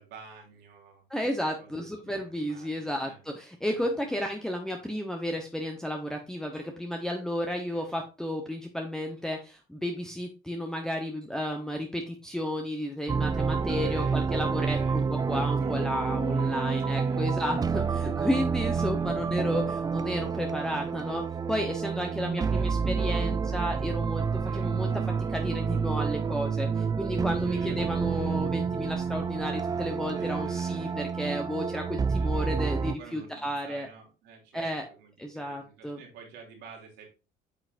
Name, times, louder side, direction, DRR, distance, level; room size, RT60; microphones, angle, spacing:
voice 1, 0.0-1.0 1.6-3.2 3.7-3.9 7.4-7.9 13.5-17.6 18.6-19.2 22.4-22.7 24.4-24.7 27.4-27.8 28.1-28.4 30.1-31.1 32.1-32.6 32.8-37.1, right 5 dB, 85° right, 1 dB, 3.1 m, -50 dB
voice 2, 1.1-24.9 25.3-33.9 34.5-34.9 35.2-36.0, equal, 5° left, 3 dB, 1.0 m, -33 dB
sound 1, 13.1-33.0, right 5 dB, 20° right, 0.4 m, -29 dB
8.8 x 5.8 x 2.6 m, 0.31 s
cardioid pair, 110°, 17 cm